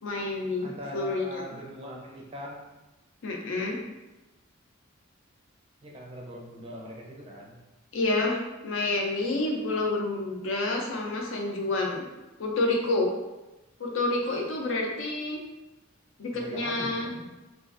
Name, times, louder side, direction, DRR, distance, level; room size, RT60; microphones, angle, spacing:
voice 1, 0.0-1.4 3.2-3.8 7.9-12.1 12.4-13.1 13.8-15.4 16.2-17.1, left 2 dB, 65° left, 0 dB, 0.5 m, -28 dB
voice 2, 0.6-2.7 5.8-7.6 16.3-17.3, equal, 25° right, -1 dB, 0.4 m, -41 dB
3.0 x 2.4 x 2.4 m, 1.1 s
head